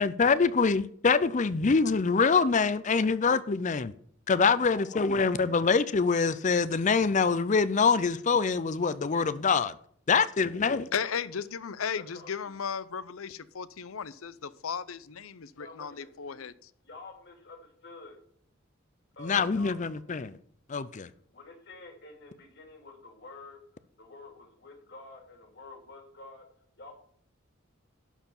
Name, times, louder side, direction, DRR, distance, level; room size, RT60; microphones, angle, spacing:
voice 1, 0.0-3.9 4.3-9.7 10.1-10.8 19.2-20.4 20.7-21.1, left 5 dB, 35° left, 0.5 m, -25 dB
voice 2, 4.7-5.0 12.0-12.5 15.5-16.4 16.8-18.2 19.2-20.1 21.3-23.6 24.0-26.5 26.8-26.9, left 3 dB, 55° left, 2.6 m, -49 dB
voice 3, 10.9-16.7, left 6 dB, 85° left, 0.6 m, -35 dB
11.5 x 4.6 x 7.1 m
head